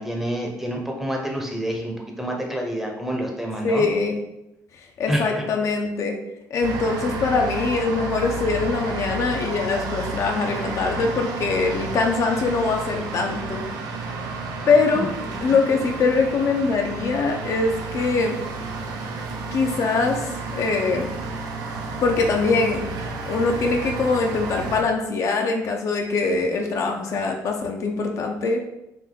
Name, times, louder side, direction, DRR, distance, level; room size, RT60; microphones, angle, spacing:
voice 1, 0.0-3.9 5.1-5.5 14.9-15.1, equal, 5° right, 1 dB, 0.7 m, -28 dB
voice 2, 3.6-4.2 5.0-6.2 6.5-13.6 14.7-15.1 15.4-18.4 19.5-20.3 20.5-21.1 22.0-22.9 23.3-28.6, left 4 dB, 55° left, 2 dB, 0.5 m, -23 dB
sound 1, 6.6-24.8, right 3 dB, 90° right, 0.6 m, -31 dB
3.7 x 2.6 x 3.6 m, 0.86 s
cardioid pair, 125°, 6 cm